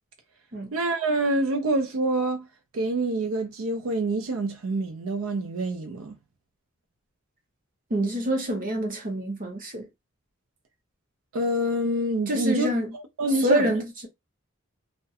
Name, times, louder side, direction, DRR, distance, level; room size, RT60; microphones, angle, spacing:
voice 1, 0.7-2.5 2.7-6.2 11.3-13.8, right 1 dB, 80° right, 0.5 m, -27 dB
voice 2, 7.9-9.9 12.3-12.9 13.3-14.1, equal, 40° right, 0.7 m, -26 dB
2.3 x 2.1 x 2.7 m
head